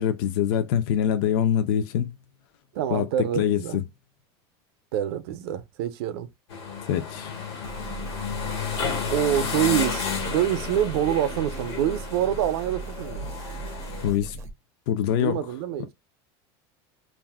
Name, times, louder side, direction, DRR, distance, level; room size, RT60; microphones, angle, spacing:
voice 1, 0.0-2.1 2.9-3.1 3.4-3.8 6.9-7.3 14.0-14.4 14.9-15.5, left 9 dB, 65° left, 0.4 m, -24 dB
voice 2, 2.7-3.8 4.9-6.3 9.1-13.3 15.1-15.9, right 10 dB, 75° right, 0.5 m, -26 dB
sound 1, 6.5-14.1, left 6 dB, 80° left, 1.3 m, -32 dB
sound 2, 7.6-14.5, right 5 dB, 20° right, 0.4 m, -38 dB
2.5 x 2.0 x 3.4 m
supercardioid pair, 170°, 13 cm